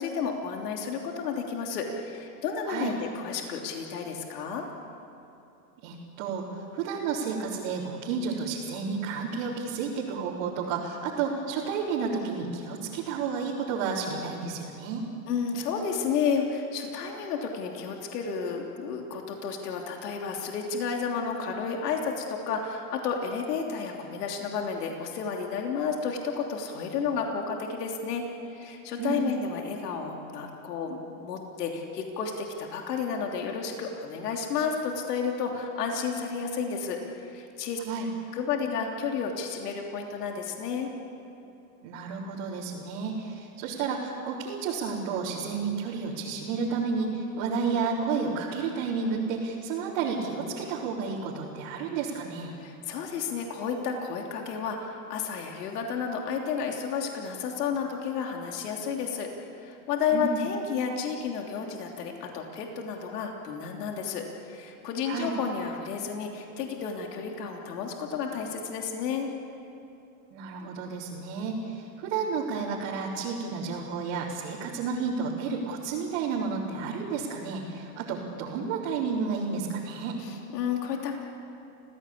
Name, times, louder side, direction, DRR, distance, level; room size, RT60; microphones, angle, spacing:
voice 1, 0.0-4.7 15.3-37.8 38.3-40.9 52.6-59.3 59.6-69.3 70.6-70.7 80.2-81.2, left 6 dB, 70° left, 1 dB, 3.2 m, -32 dB
voice 2, 5.8-15.0 29.0-29.2 37.8-38.1 41.8-52.5 60.1-60.4 65.1-65.3 70.3-80.2, right 5 dB, 45° right, -6 dB, 4.0 m, -31 dB
29.5 x 16.5 x 8.6 m, 2.8 s
supercardioid pair, 145°, 48 cm